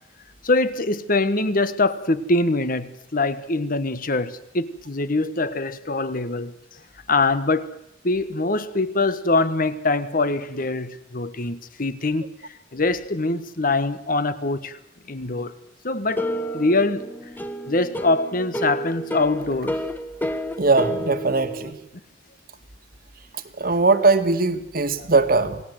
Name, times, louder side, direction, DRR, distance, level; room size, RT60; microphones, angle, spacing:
voice 1, 0.4-6.5 7.1-7.7 8.0-12.3 12.7-14.8 15.1-15.6 15.8-17.1 17.7-19.8 25.0-25.1, left 2 dB, 50° left, 1.4 m, -23 dB
sound 1, 16.2-21.7, equal, 10° left, 1.2 m, -30 dB
voice 2, 20.6-21.8 23.6-25.6, right 3 dB, 50° right, 1.8 m, -20 dB
28.0 x 19.5 x 8.0 m
head